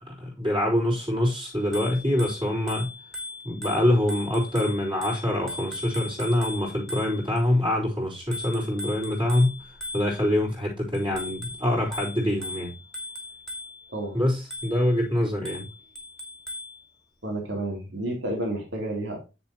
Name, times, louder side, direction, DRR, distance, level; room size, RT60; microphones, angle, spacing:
voice 1, 0.1-2.9 3.4-9.6 9.9-12.7 14.1-15.7, left 1 dB, 25° right, 3.9 m, -25 dB
Bicycle bell, 1.6-7.4 8.3-10.4 10.9-13.9 14.5-14.9 15.5-16.8, left 2 dB, 5° left, 2.6 m, -38 dB
voice 2, 17.2-19.2, right 1 dB, 60° right, 3.2 m, -30 dB
9.2 x 7.3 x 3.0 m
head